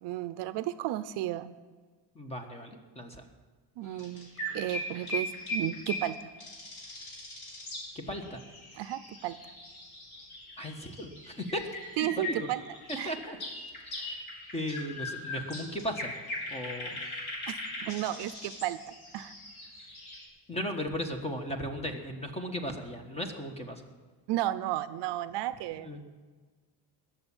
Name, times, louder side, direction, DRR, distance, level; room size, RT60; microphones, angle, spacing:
voice 1, 0.0-1.5 3.8-6.3 8.8-9.4 12.0-12.6 13.0-13.1 17.5-18.8 19.1-19.3 24.3-25.9, right 14 dB, 60° right, 14 dB, 0.7 m, -33 dB
voice 2, 2.1-3.3 7.9-8.4 10.6-11.7 12.0-12.5 13.0-13.4 13.8-14.2 14.5-16.1 16.5-17.0 20.5-23.8 25.8-26.0, equal, 15° left, 5 dB, 1.3 m, -36 dB
sound 1, 3.8-20.3, left 1 dB, 55° left, 4.8 m, -40 dB
21.0 x 7.5 x 7.1 m, 1.4 s
cardioid pair, 160°, 46 cm